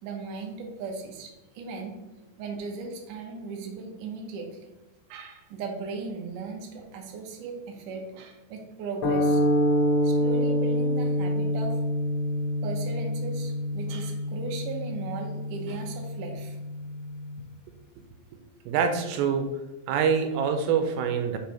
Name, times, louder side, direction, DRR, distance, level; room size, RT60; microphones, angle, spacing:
voice 1, 0.0-2.0 2.4-4.7 5.1-9.4 10.0-11.8 12.6-16.6, right 4 dB, 70° right, 1 dB, 2.1 m, -37 dB
sound 1, 9.0-17.4, equal, 75° left, 2.8 m, -27 dB
voice 2, 18.3-19.5 19.9-21.4, right 6 dB, 85° right, 6 dB, 2.8 m, -25 dB
6.4 x 3.9 x 4.3 m, 1.0 s
omnidirectional pair, 4.9 m